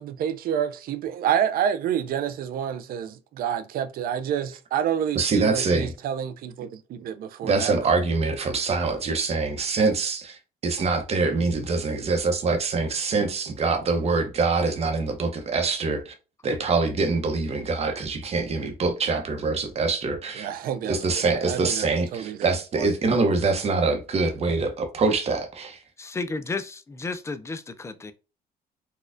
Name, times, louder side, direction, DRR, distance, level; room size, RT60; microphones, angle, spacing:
voice 1, 0.0-8.0 20.3-22.4 22.7-22.9, right 9 dB, 60° right, 0.4 m, -28 dB
voice 2, 5.1-5.9 7.4-16.1 16.4-20.5 20.8-25.8, right 3 dB, 40° right, 0.8 m, -24 dB
voice 3, 26.0-28.1, left 3 dB, 15° left, 0.4 m, -32 dB
4.1 x 2.3 x 2.5 m
cardioid pair, 110°, 17 cm